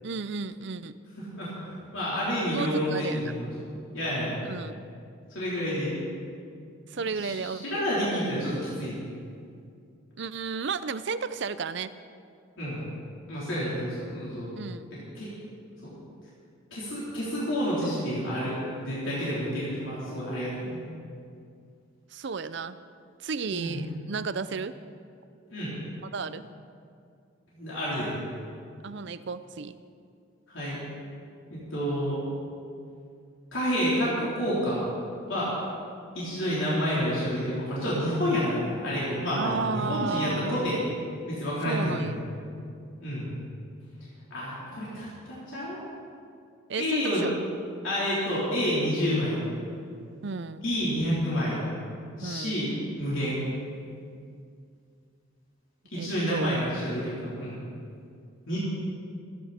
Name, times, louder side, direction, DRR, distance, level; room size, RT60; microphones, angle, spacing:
voice 1, 0.0-1.0 2.5-3.3 4.4-4.8 6.9-7.8 10.2-11.9 14.5-14.9 22.1-22.8 23.2-24.7 26.1-26.5 28.8-29.8 39.4-40.8 41.6-42.2 46.7-47.4 50.2-50.7 52.2-52.7 55.9-56.6, right 4 dB, 60° right, 13 dB, 0.5 m, -33 dB
voice 2, 1.2-3.5 3.9-4.4 5.3-5.9 7.2-9.0 12.6-12.8 13.3-14.6 15.1-15.3 16.7-20.8 23.5-23.8 25.5-25.7 27.5-28.2 30.5-30.8 31.5-32.2 33.5-34.8 35.3-35.5 36.1-40.8 41.3-42.0 43.0-43.3 44.3-45.8 46.8-47.2 47.8-49.4 50.6-51.6 52.2-53.4 55.9-57.6 58.5-58.6, equal, 70° left, -8 dB, 3.8 m, -29 dB
25.5 x 10.5 x 4.3 m, 2.4 s
head